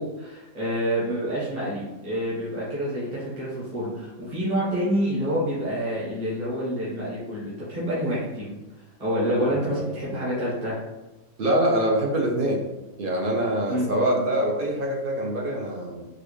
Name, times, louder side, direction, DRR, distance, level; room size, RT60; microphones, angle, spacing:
voice 1, 0.0-8.6 9.0-10.8 13.7-13.9, equal, 30° right, -8 dB, 1.1 m, -27 dB
voice 2, 9.5-9.9 11.4-12.6 13.0-16.0, right 1 dB, 55° right, -2 dB, 0.6 m, -24 dB
4.0 x 2.4 x 3.1 m, 1.1 s
omnidirectional pair, 1.5 m